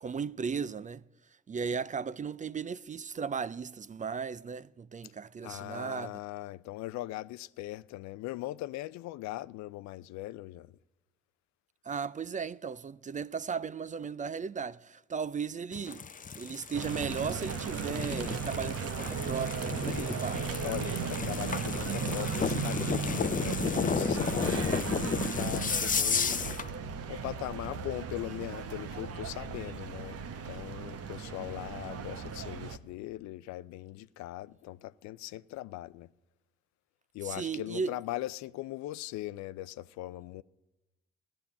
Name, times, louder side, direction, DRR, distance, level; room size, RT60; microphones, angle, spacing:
voice 1, 0.0-1.0 1.5-6.1 11.8-16.0 16.4-20.6 37.2-37.9, right 6 dB, 25° right, 0.4 m, -36 dB
voice 2, 5.4-10.7 20.6-26.5 27.1-36.1 37.1-40.4, left 16 dB, 65° left, 0.5 m, -40 dB
sound 1, 15.7-26.7, left 6 dB, 25° left, 0.7 m, -33 dB
sound 2, 16.7-32.8, right 6 dB, 55° right, 1.1 m, -36 dB
15.0 x 10.0 x 8.4 m
hypercardioid pair, 55°, 30 cm